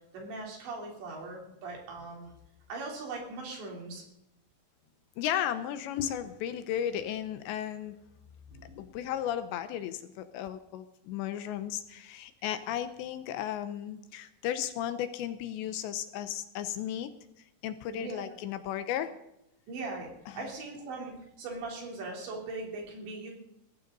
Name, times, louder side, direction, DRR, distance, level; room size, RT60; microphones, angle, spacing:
voice 1, 0.1-2.3 2.7-4.0 8.5-8.8 12.5-12.7 17.9-18.4 19.7-20.1 20.3-23.3, right 3 dB, 70° right, 0 dB, 5.8 m, -40 dB
voice 2, 5.2-8.0 8.8-17.1 17.6-19.1 20.3-20.5, left 10 dB, 80° left, 10 dB, 3.0 m, -34 dB
20.5 x 15.0 x 4.0 m, 0.84 s
omnidirectional pair, 5.4 m